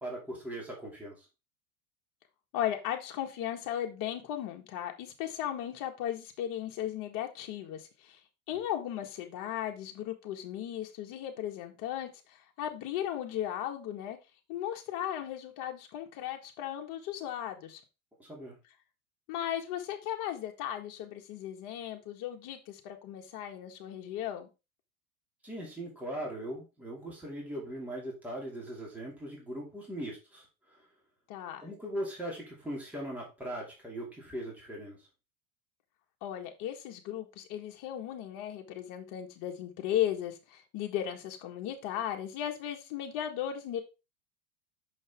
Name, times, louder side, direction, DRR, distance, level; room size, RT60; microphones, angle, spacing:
voice 1, 0.0-1.3 8.5-8.6 18.2-18.6 25.4-30.8 31.6-35.0, right 1 dB, 5° right, 2.6 m, -40 dB
voice 2, 2.5-8.2 8.5-14.2 14.5-17.8 19.3-24.5 31.3-31.6 36.2-43.8, left 11 dB, 45° left, 1.7 m, -36 dB
6.3 x 5.3 x 3.6 m
supercardioid pair, 130°, 43 cm